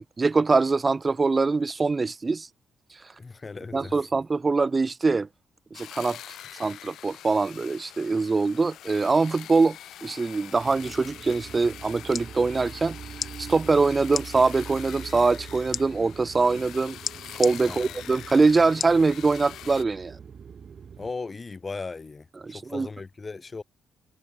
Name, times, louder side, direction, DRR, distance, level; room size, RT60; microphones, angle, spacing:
voice 1, 0.2-2.5 3.7-5.3 5.7-6.2 6.6-13.0 13.4-17.0 17.4-20.2 22.4-22.9, right 4 dB, 25° right, 0.5 m, -23 dB
voice 2, 3.2-3.9 17.6-17.9 21.0-23.6, left 4 dB, 25° left, 6.6 m, -37 dB
sound 1, 5.7-19.8, left 12 dB, 75° left, 2.5 m, -44 dB
sound 2, 10.5-21.1, right 7 dB, 45° right, 4.6 m, -43 dB
sound 3, 12.1-12.3 13.1-13.3 14.1-14.3 15.7-15.8 17.0-17.5 18.8-19.0 19.6-19.7, left 6 dB, 45° left, 2.8 m, -31 dB
cardioid pair, 100°, 0 cm